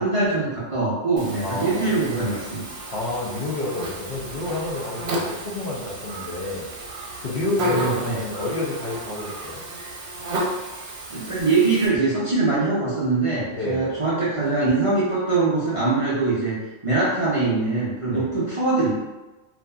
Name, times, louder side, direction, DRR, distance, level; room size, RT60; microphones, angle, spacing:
voice 1, 0.0-2.6 7.6-8.2 11.1-16.6 16.8-18.9, right 3 dB, 40° right, -10 dB, 0.5 m, -22 dB
Buzz, 1.2-11.9, right 1 dB, 85° right, 0.9 m, -33 dB
voice 2, 1.4-1.9 2.9-6.7 7.2-9.6 13.5-13.9 18.1-18.3, left 2 dB, 60° left, -5 dB, 0.7 m, -29 dB
2.6 x 2.4 x 2.2 m, 1.1 s
omnidirectional pair, 1.2 m